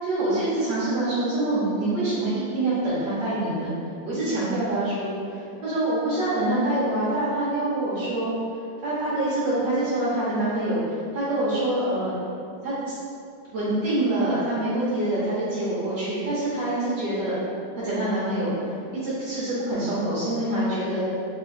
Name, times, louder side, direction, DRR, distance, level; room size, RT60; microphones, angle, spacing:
voice 1, 0.0-3.7 4.0-5.1 5.6-8.3 8.8-12.3 12.6-12.9 13.5-17.3 17.8-18.7 19.0-21.0, right 1 dB, 75° right, -11 dB, 1.5 m, -25 dB
4.0 x 2.9 x 3.1 m, 2.5 s
omnidirectional pair, 2.0 m